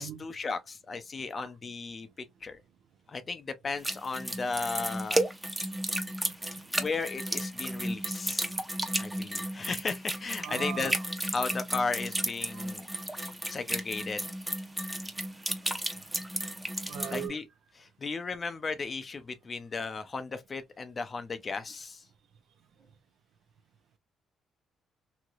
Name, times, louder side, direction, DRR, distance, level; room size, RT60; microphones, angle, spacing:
voice 1, 0.0-2.6 3.1-5.2 6.8-8.5 9.0-11.0 11.3-12.9 13.5-14.2 17.1-17.5 17.8-22.0, left 4 dB, 40° left, 0.4 m, -35 dB
sound 1, 3.8-17.3, right 1 dB, 10° right, 0.6 m, -33 dB
voice 2, 6.0-6.4 10.4-10.9 12.5-12.7 16.9-17.4, right 10 dB, 75° right, 0.5 m, -39 dB
3.0 x 2.8 x 2.4 m
cardioid pair, 90°, 0 cm